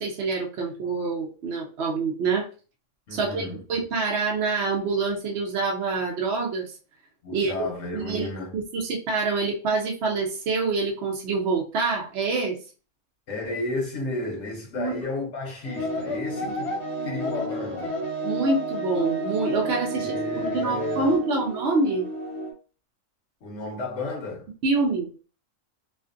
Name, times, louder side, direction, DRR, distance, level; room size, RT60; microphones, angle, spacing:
voice 1, 0.0-2.5 3.1-6.8 7.3-7.5 7.9-12.6 14.8-14.9 16.4-16.5 18.2-22.1 24.6-25.1, right 3 dB, 65° right, 0.8 m, -26 dB
voice 2, 3.1-3.6 7.2-8.6 13.3-18.0 19.9-21.2 23.4-24.5, left 2 dB, 65° left, 0.9 m, -33 dB
sound 1, 15.6-22.5, right 1 dB, 30° left, 0.8 m, -30 dB
2.4 x 2.3 x 2.5 m
omnidirectional pair, 1.4 m